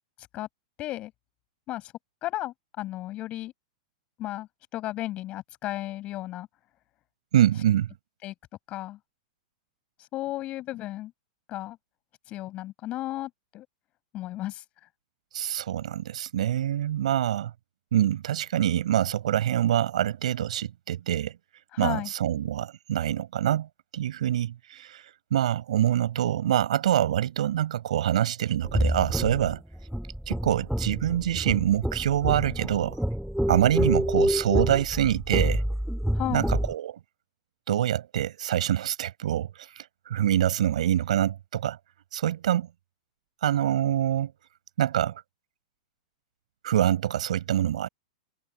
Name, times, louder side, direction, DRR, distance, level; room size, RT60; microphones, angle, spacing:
voice 1, 0.8-1.1 1.7-1.9 2.2-3.5 4.2-6.5 8.2-8.3 8.7-9.0 10.1-11.1 11.5-11.8 12.3-13.7 14.1-14.6 21.7-22.1 36.1-36.5, left 15 dB, 35° left, 7.8 m, -34 dB
voice 2, 7.3-7.9 15.3-17.5 17.9-21.4 21.8-25.0 25.3-29.6 30.3-33.0 33.5-35.6 36.3-37.0 37.7-41.8 42.1-42.7 43.4-44.3 44.8-45.2 46.6-47.9, right 11 dB, 75° right, 5.0 m, -25 dB
sound 1, 28.6-36.7, equal, ahead, 2.0 m, -28 dB
hypercardioid pair, 135°, 4 cm